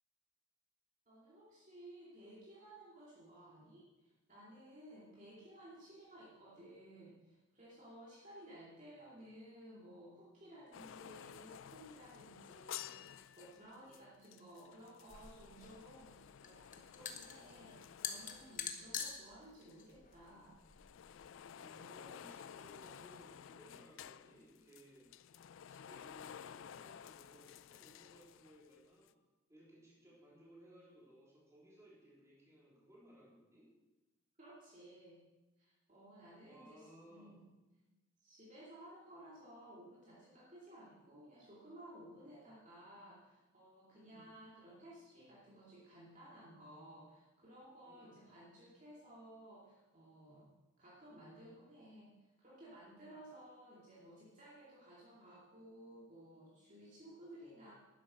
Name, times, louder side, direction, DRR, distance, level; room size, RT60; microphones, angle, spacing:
voice 1, 1.1-20.6 34.4-35.2 35.6-37.5 38.2-50.5 50.8-57.7, right 1 dB, 35° right, -7 dB, 2.5 m, -57 dB
sound 1, 10.7-19.4 19.6-28.8 29.1-29.2, left 9 dB, 60° left, 0.3 m, -53 dB
sound 2, 15.1-21.3, left 7 dB, 35° left, 1.1 m, -46 dB
voice 2, 21.6-25.1 25.7-29.1 29.5-33.7 36.4-37.4 40.8-41.0 42.3-42.5 44.1-44.3 47.9-48.2, right 1 dB, 15° right, -5 dB, 3.7 m, -61 dB
11.5 x 9.8 x 6.3 m, 1.1 s
head